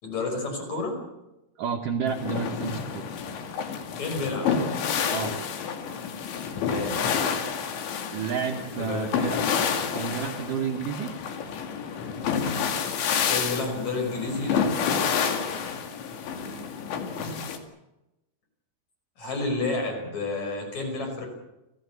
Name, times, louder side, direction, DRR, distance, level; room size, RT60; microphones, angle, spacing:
voice 1, 0.0-1.1 4.0-4.6 6.6-7.1 8.8-9.1 13.3-14.8 19.2-21.3, left 3 dB, 35° left, 4 dB, 6.3 m, -30 dB
voice 2, 1.6-3.0 5.1-5.4 8.1-9.4 9.9-11.1 16.4-16.7 17.2-17.3, right 6 dB, 80° right, 2 dB, 1.8 m, -30 dB
sound 1, 2.1-17.6, left 6 dB, 65° left, 4.1 m, -29 dB
30.0 x 15.5 x 8.3 m, 0.95 s
omnidirectional pair, 6.0 m